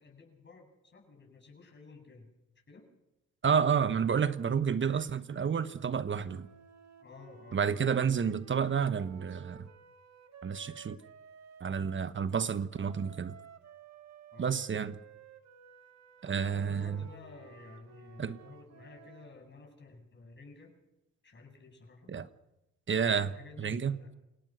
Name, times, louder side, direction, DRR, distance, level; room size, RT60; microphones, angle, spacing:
voice 1, 0.0-2.3 2.7-2.9 7.0-8.0 14.3-14.7 16.4-20.7 21.2-22.1 22.9-24.1, left 3 dB, 35° left, 8.0 m, -53 dB
voice 2, 3.4-6.5 7.5-9.7 10.4-11.0 11.6-13.4 14.4-15.0 16.2-17.0 18.2-18.4 22.1-22.3 22.9-23.3 23.6-24.0, right 7 dB, 40° right, 1.2 m, -30 dB
sound 1, 6.1-12.1 12.7-19.4, right 7 dB, 60° right, 2.0 m, -55 dB
28.0 x 17.5 x 6.4 m
supercardioid pair, 70°, 31 cm